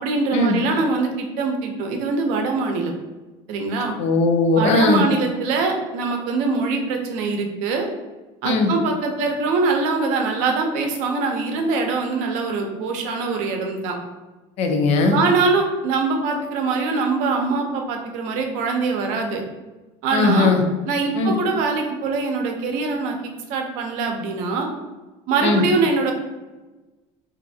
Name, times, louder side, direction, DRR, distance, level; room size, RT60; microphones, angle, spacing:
voice 1, 0.0-2.9 3.5-3.9 4.5-7.9 8.4-14.0 15.1-19.4 20.0-20.5 20.9-23.2 23.5-24.7 25.3-26.1, right 4 dB, 70° right, 3 dB, 0.6 m, -23 dB
voice 2, 4.0-5.0 8.4-8.7 14.6-15.2 20.1-20.6 21.2-21.3 25.4-25.6, left 3 dB, 55° left, 4 dB, 0.5 m, -18 dB
3.2 x 2.5 x 2.6 m, 1.2 s
cardioid pair, 145°, 13 cm